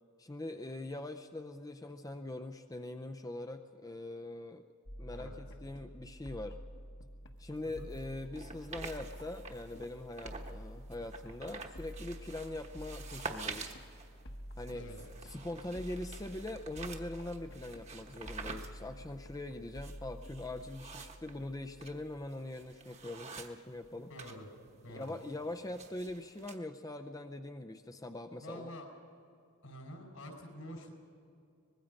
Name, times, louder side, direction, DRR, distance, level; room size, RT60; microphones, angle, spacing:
voice 1, 0.2-4.6 5.0-6.6 7.4-13.7 14.6-14.9 15.2-24.1 24.9-28.7, left 1 dB, 15° left, 7 dB, 0.5 m, -42 dB
sound 1, 4.9-22.5, equal, 55° left, 1.4 m, -49 dB
sound 2, 7.1-13.4, right 10 dB, 85° right, 5.7 m, -73 dB
sound 3, 8.3-10.6 10.9-24.4 24.7-26.6, right 4 dB, 30° right, 1.2 m, -48 dB
voice 2, 24.1-25.2 28.4-28.9 29.6-30.9, equal, 75° left, 3 dB, 4.7 m, -48 dB
24.0 x 20.5 x 5.2 m, 2.5 s
head